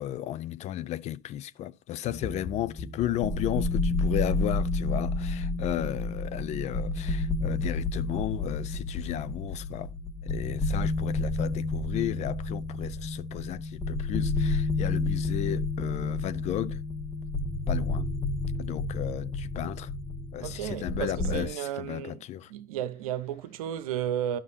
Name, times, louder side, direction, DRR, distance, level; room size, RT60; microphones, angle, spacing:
voice 1, 0.0-9.9 10.2-16.8 17.7-18.1 18.6-19.9 20.3-22.5, left 13 dB, 35° left, 0.4 m, -34 dB
sound 1, 2.0-21.5, left 2 dB, 20° left, 0.9 m, -30 dB
voice 2, 20.4-22.2 22.5-24.4, right 11 dB, 70° right, 0.9 m, -33 dB
12.5 x 5.7 x 2.7 m
hypercardioid pair, 80°, 19 cm